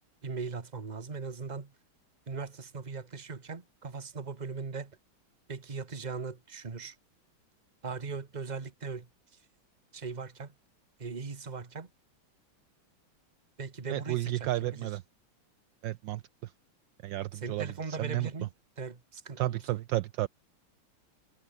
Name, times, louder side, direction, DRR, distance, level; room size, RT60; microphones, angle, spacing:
voice 1, 0.2-1.7 2.3-5.0 5.5-7.0 7.8-9.1 9.9-10.5 11.0-11.9 13.6-15.0 17.3-19.8, right 4 dB, 25° right, 1.4 m, -39 dB
voice 2, 13.9-15.0 15.8-16.2 17.0-18.3 19.4-20.3, right 15 dB, 75° right, 1.2 m, -32 dB
omnidirectional pair, 2.3 m